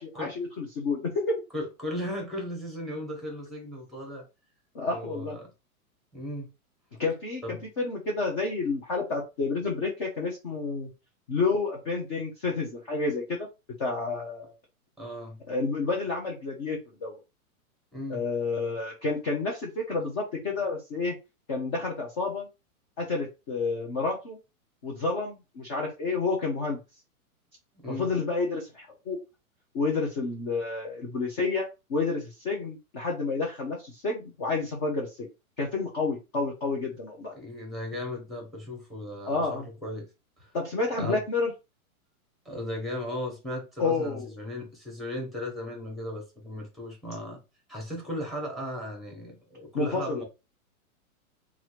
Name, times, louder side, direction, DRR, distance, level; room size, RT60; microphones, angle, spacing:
voice 1, 0.0-1.4 4.7-5.4 7.0-10.9 11.3-13.5 13.8-14.5 15.5-17.2 18.1-21.2 21.5-22.5 23.0-24.4 24.8-26.8 27.9-29.2 29.7-35.3 35.6-37.3 39.3-39.7 40.5-41.5 43.8-44.3 49.7-50.2, left 3 dB, 20° left, 0.3 m, -30 dB
voice 2, 1.5-4.3 4.9-5.5 6.1-6.5 7.4-7.6 15.0-15.4 17.9-18.2 27.7-28.1 37.3-40.1 40.4-40.5 41.0-41.2 42.4-47.4 47.7-50.2, left 1 dB, ahead, 0.9 m, -36 dB
2.9 x 2.4 x 3.0 m
hypercardioid pair, 135°, 44 cm